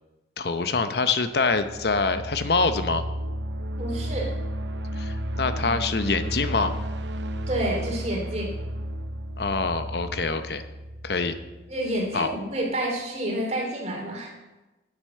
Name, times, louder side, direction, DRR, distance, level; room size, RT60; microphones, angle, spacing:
voice 1, 0.4-3.0 5.0-6.7 9.4-10.7 11.0-11.4 12.1-12.3, left 4 dB, 65° left, 10 dB, 0.8 m, -25 dB
sound 1, 1.4-12.1, right 1 dB, 85° right, 0.8 m, -33 dB
voice 2, 3.8-4.3 7.5-8.5 11.7-14.3, right 1 dB, 35° right, 0 dB, 2.6 m, -29 dB
9.6 x 8.1 x 6.6 m, 1.1 s
head